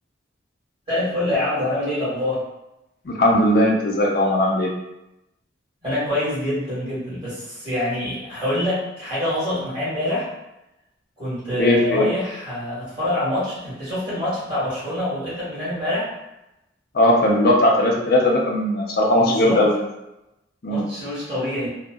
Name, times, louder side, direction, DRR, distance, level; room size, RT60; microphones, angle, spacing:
voice 1, 0.9-2.4 5.8-10.2 11.2-16.1 19.1-19.6 20.7-21.7, left 1 dB, 30° right, -10 dB, 1.5 m, -25 dB
voice 2, 3.1-4.7 11.6-12.1 16.9-19.8 20.6-20.8, left 1 dB, 55° left, -1 dB, 0.5 m, -18 dB
2.7 x 2.0 x 2.3 m, 0.91 s
head